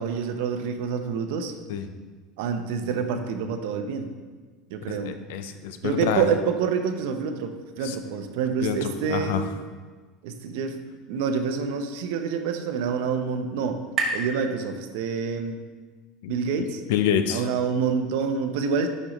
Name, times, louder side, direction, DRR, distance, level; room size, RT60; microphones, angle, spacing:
voice 1, 0.0-1.5 2.4-4.1 4.7-5.1 5.8-9.5 10.2-10.8 11.1-13.8 14.1-15.6 16.3-16.8 17.3-18.9, right 6 dB, 70° right, 7 dB, 0.7 m, -27 dB
voice 2, 4.9-6.2 7.8-8.0 8.6-9.4 16.2-16.3 16.9-17.5, left 9 dB, 80° left, 9 dB, 0.6 m, -27 dB
sound 1, 11.6-15.4, right 3 dB, 30° right, 0.8 m, -35 dB
9.9 x 5.4 x 3.0 m, 1.4 s
cardioid pair, 170°, 0 cm